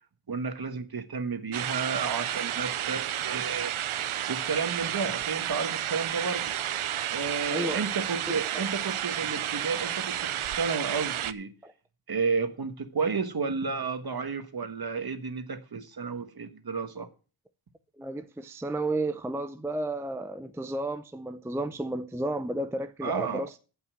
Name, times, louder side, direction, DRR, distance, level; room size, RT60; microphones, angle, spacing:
voice 1, 0.3-3.7 4.3-6.6 7.1-11.5 12.1-17.1 23.0-23.4, right 5 dB, 50° right, 1.4 m, -32 dB
sound 1, 1.5-11.3, right 11 dB, 80° right, 0.7 m, -31 dB
voice 2, 7.5-7.8 8.3-8.7 11.6-11.7 18.0-23.6, right 1 dB, 5° right, 0.5 m, -32 dB
14.0 x 5.6 x 6.3 m
wide cardioid pair, 115°, 49 cm